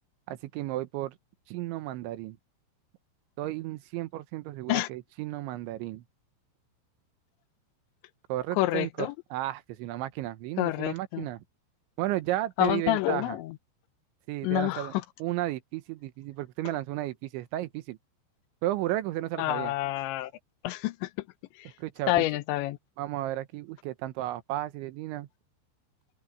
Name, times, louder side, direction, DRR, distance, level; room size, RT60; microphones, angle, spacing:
voice 1, 0.3-1.2 1.5-2.4 3.4-6.0 8.3-11.4 12.0-13.4 14.3-14.9 15.2-18.0 18.6-19.7 21.8-22.2 23.0-25.3, right 15 dB, 85° right, 3.4 m, -33 dB
voice 2, 8.6-9.1 10.6-11.3 12.6-13.5 14.4-14.9 19.4-20.3 20.6-21.1 21.6-21.7 22.1-22.8, left 16 dB, 85° left, 3.1 m, -28 dB
open air
omnidirectional pair, 5.3 m